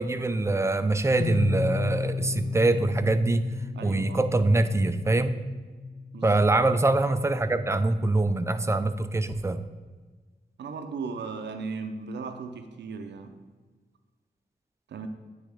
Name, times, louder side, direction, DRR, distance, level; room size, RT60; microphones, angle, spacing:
voice 1, 0.0-3.5 3.8-5.4 6.2-9.6, right 2 dB, 15° right, 10 dB, 0.4 m, -24 dB
sound 1, 1.2-6.8, left 4 dB, 75° left, 0.7 m, -34 dB
voice 2, 3.7-4.2 6.1-6.4 10.6-13.3 14.9-15.1, right 4 dB, 90° right, 7 dB, 0.5 m, -36 dB
9.6 x 3.5 x 3.4 m, 1.4 s
cardioid pair, 60°, 18 cm